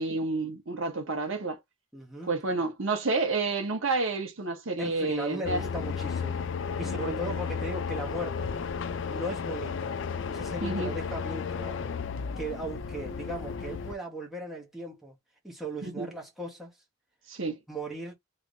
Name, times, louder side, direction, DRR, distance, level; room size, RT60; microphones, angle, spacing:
voice 1, 0.0-1.6 2.3-5.7 6.8-7.2 10.6-10.9 15.8-16.1 17.3-17.6, right 3 dB, 70° right, 1.1 m, -30 dB
voice 2, 1.9-2.3 4.8-6.5 6.8-8.5 9.1-9.9 10.3-11.9 12.4-15.1 15.4-16.8 17.7-18.1, right 1 dB, ahead, 1.2 m, -37 dB
sound 1, 5.4-13.9, left 6 dB, 60° left, 0.4 m, -33 dB
3.3 x 3.1 x 2.6 m
head